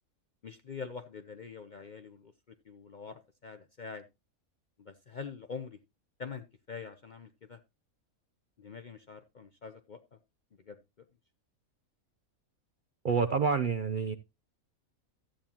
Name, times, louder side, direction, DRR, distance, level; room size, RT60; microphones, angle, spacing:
voice 1, 0.4-2.3 2.6-4.1 4.8-5.8 6.2-7.6 8.6-10.2 10.7-10.8, left 5 dB, 50° left, 0.6 m, -44 dB
voice 2, 13.0-14.2, right 5 dB, 50° right, 0.6 m, -28 dB
13.0 x 8.8 x 2.8 m
omnidirectional pair, 1.5 m